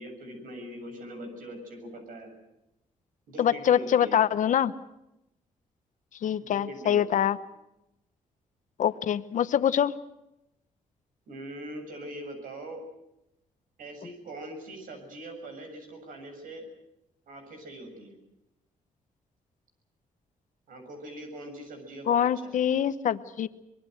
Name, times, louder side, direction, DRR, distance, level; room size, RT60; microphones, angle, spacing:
voice 1, 0.0-2.3 3.3-4.2 6.4-7.3 11.3-12.8 13.8-16.7 17.3-18.2 20.7-22.6, right 1 dB, 80° right, 5 dB, 7.2 m, -42 dB
voice 2, 3.4-4.7 6.2-7.4 8.8-10.0 22.1-23.5, left 9 dB, 65° left, 13 dB, 1.0 m, -24 dB
24.0 x 21.0 x 7.9 m, 0.88 s
cardioid pair, 85°, 14 cm